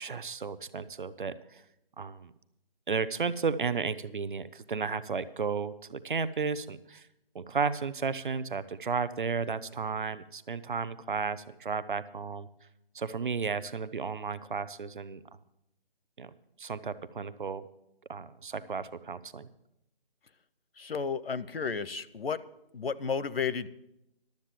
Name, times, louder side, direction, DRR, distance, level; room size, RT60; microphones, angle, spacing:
voice 1, 0.0-1.6 2.0-2.3 2.9-7.0 7.3-12.5 12.9-15.2 16.2-16.3 16.6-17.6 18.1-19.5, right 5 dB, 60° right, 14 dB, 0.7 m, -33 dB
voice 2, 20.8-22.4 22.7-23.7, left 6 dB, 80° left, 17 dB, 0.7 m, -32 dB
12.0 x 7.4 x 7.4 m, 0.82 s
figure-of-eight pair, 170°, 29 cm